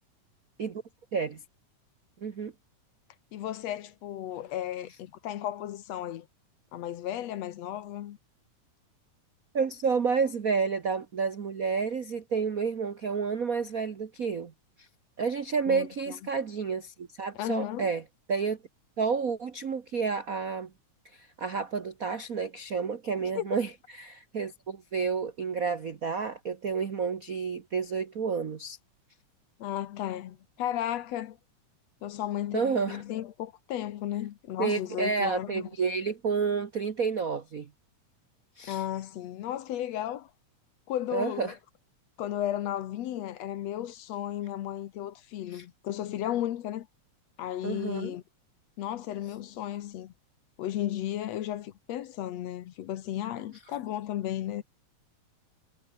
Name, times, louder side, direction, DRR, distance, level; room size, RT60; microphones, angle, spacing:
voice 1, 1.1-1.4 2.2-2.5 9.5-14.5 14.8-14.9 15.2-18.6 19.0-20.7 21.0-28.8 32.5-33.0 34.6-37.7 38.6-38.8 41.1-41.6 45.5-45.6 47.6-48.1, right 5 dB, 60° right, 0.9 m, -30 dB
voice 2, 3.3-6.3 6.7-8.2 15.7-16.2 17.4-17.9 23.4-23.5 29.6-31.4 32.0-35.7 38.7-40.3 40.9-41.5 42.2-46.9 47.4-48.2 48.8-50.1 50.6-54.6, left 12 dB, 65° left, 2.1 m, -34 dB
omnidirectional pair, 3.4 m